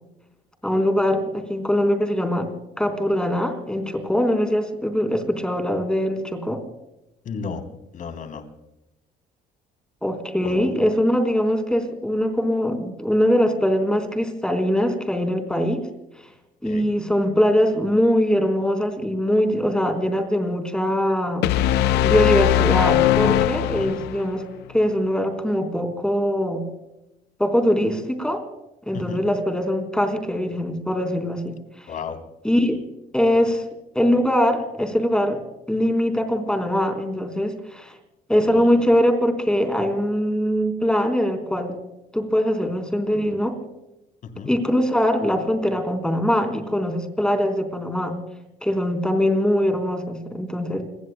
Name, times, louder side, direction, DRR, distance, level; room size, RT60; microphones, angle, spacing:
voice 1, 0.6-2.5 2.8-6.6 10.0-15.9 16.6-21.5 22.0-24.4 24.7-26.7 27.4-28.4 28.9-31.9 32.4-32.8 33.1-33.6 33.9-35.4 35.7-37.9 38.3-41.8 42.1-43.6 44.5-48.2 48.6-50.8, equal, 5° left, 5 dB, 3.8 m, -22 dB
voice 2, 7.3-7.6 7.9-8.5 10.4-10.7 16.6-16.9 23.6-23.9 28.9-29.2 31.9-32.2 38.5-38.8 44.4-44.5, left 5 dB, 50° left, 6 dB, 3.5 m, -33 dB
sound 1, 21.4-24.3, left 12 dB, 85° left, 0.7 m, -19 dB
29.5 x 22.0 x 2.2 m, 0.91 s
cardioid pair, 110°, 17 cm